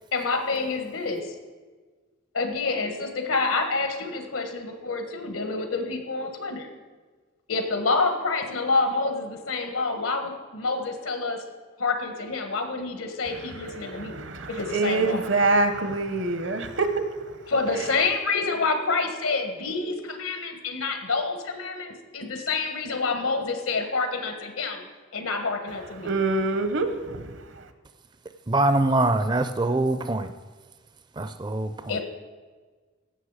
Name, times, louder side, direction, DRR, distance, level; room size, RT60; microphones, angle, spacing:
voice 1, 0.1-1.3 2.3-6.7 7.5-11.4 11.8-14.2 14.5-15.2 17.5-24.9 25.1-26.1 31.9-32.0, left 3 dB, 85° left, 6 dB, 1.4 m, -27 dB
voice 2, 13.8-17.0 26.0-27.3, right 3 dB, 65° right, 9 dB, 0.9 m, -25 dB
voice 3, 28.5-30.3 31.2-31.7, right 2 dB, 20° right, 11 dB, 0.4 m, -23 dB
16.0 x 6.7 x 4.9 m, 1.4 s
head